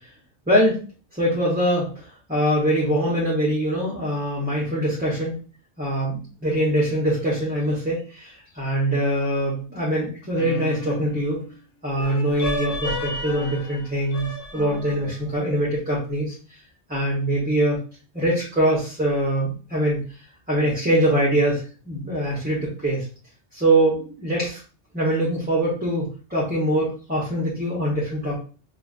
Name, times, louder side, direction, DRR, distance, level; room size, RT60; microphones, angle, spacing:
voice 1, 0.5-0.8 1.2-2.0 2.3-5.4 5.8-11.4 11.8-16.3 16.9-17.8 18.1-20.0 20.5-23.0 23.5-24.6 24.9-28.4, right 1 dB, 10° right, -6 dB, 0.9 m, -23 dB
sound 1, 10.4-11.5 12.0-15.3, left 1 dB, 55° left, 0.9 m, -32 dB
4.9 x 2.5 x 2.5 m, 0.38 s
omnidirectional pair, 1.2 m